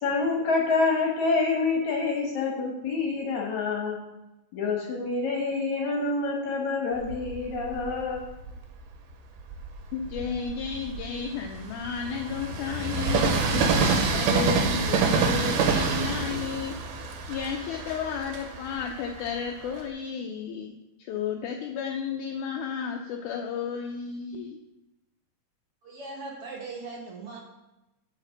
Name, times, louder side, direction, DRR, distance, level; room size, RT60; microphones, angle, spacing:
voice 1, 0.0-4.0 4.5-8.2, left 3 dB, 60° left, -1 dB, 2.3 m, -27 dB
Train, 7.0-8.7 9.3-19.9, right 4 dB, 85° right, 2.9 m, -27 dB
voice 2, 9.9-16.8 17.3-24.6, left 7 dB, 80° left, 3 dB, 1.7 m, -33 dB
voice 3, 25.8-27.4, right 3 dB, 60° right, -1 dB, 1.5 m, -39 dB
8.4 x 5.9 x 6.3 m, 0.98 s
omnidirectional pair, 4.2 m